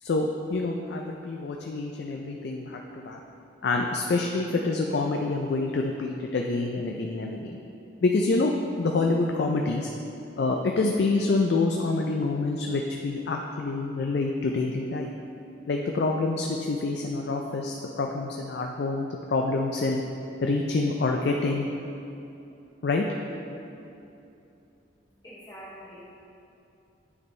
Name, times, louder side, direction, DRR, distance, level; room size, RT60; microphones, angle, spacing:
voice 1, 0.0-3.2 3.6-7.6 8.0-9.9 10.4-15.1 15.7-20.0 20.4-21.7 22.8-23.0, left 3 dB, 60° left, 2 dB, 0.4 m, -27 dB
voice 2, 25.1-26.2, equal, 20° left, -9 dB, 0.9 m, -45 dB
9.6 x 4.3 x 3.2 m, 2.8 s
head